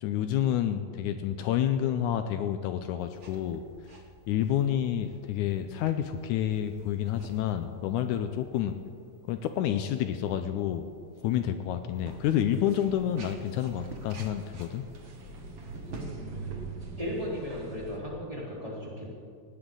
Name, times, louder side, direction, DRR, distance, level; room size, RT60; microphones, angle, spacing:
voice 1, 0.0-3.6 4.3-8.7 9.3-10.9 11.2-14.8, left 10 dB, 80° left, 8 dB, 2.0 m, -29 dB
sound 1, 3.0-16.1, right 2 dB, 80° right, 0.6 m, -51 dB
sound 2, 12.1-18.0, right 3 dB, 50° right, 2.5 m, -43 dB
voice 2, 17.0-19.1, left 1 dB, 10° right, -6 dB, 3.8 m, -35 dB
18.5 x 17.0 x 3.9 m, 2.2 s
omnidirectional pair, 3.7 m